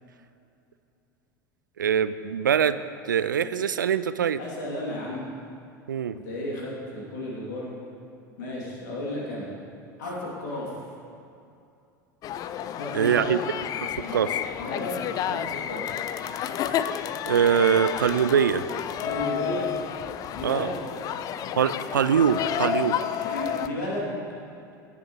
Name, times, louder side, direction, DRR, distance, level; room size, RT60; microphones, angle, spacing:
voice 1, 1.8-2.8 3.1-4.4 5.9-6.2 12.9-13.4 14.1-14.3 17.3-18.6 20.4-20.7 21.6-23.0, right 8 dB, 80° right, 14 dB, 0.4 m, -23 dB
voice 2, 4.4-5.3 6.1-7.7 8.4-9.5 10.0-10.8 12.7-13.3 14.0-14.2 14.6-15.9 19.0-19.7 20.3-21.2 23.2-24.2, left 1 dB, 65° left, -4 dB, 2.9 m, -33 dB
sound 1, 12.2-23.7, left 9 dB, 35° left, 0.4 m, -31 dB
16.5 x 8.5 x 3.2 m, 2.6 s
figure-of-eight pair, 80°, 10 cm